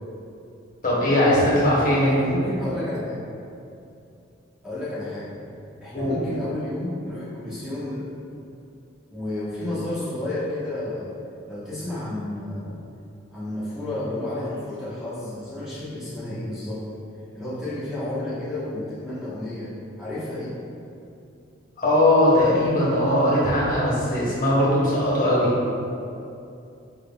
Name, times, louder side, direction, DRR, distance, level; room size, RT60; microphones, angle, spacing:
voice 1, 0.8-2.2 5.9-6.2 21.8-25.5, left 1 dB, 45° left, -6 dB, 0.9 m, -20 dB
voice 2, 2.0-3.2 4.6-5.4 5.8-8.0 9.1-11.1 11.5-12.8 13.3-16.8 17.3-20.6, left 1 dB, ahead, -12 dB, 1.1 m, -31 dB
4.6 x 3.6 x 2.3 m, 2.6 s
head